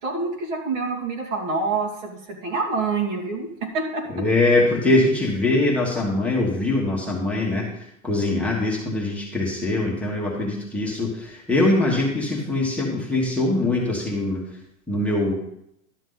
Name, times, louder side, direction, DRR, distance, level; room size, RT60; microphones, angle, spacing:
voice 1, 0.0-4.0, right 4 dB, 65° right, 1 dB, 2.6 m, -27 dB
voice 2, 4.1-7.7 8.0-14.4 14.9-15.3, left 2 dB, 5° left, -5 dB, 1.4 m, -22 dB
12.0 x 7.0 x 4.0 m, 0.79 s
supercardioid pair, 150°, 42 cm